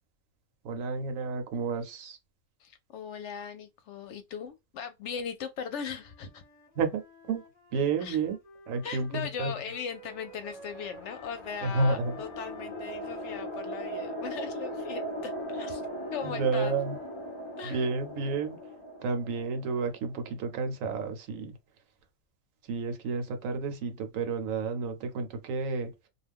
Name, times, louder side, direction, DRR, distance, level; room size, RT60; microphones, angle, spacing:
voice 1, 0.6-2.2 6.8-7.4 7.7-8.4 8.7-9.5 11.6-12.1 16.2-17.0 17.6-18.6 19.0-21.5 22.6-26.1, right 4 dB, 75° right, 1.0 m, -31 dB
voice 2, 2.6-6.4 8.0-8.2 8.8-16.8 17.6-17.8, left 7 dB, 65° left, 0.8 m, -39 dB
Wind instrument woodwind instrument, 5.9-11.4 11.9-17.7, equal, 30° left, 0.8 m, -53 dB
sound 1, 10.0-20.5, equal, 45° left, 0.3 m, -39 dB
2.4 x 2.2 x 3.4 m
omnidirectional pair, 1.4 m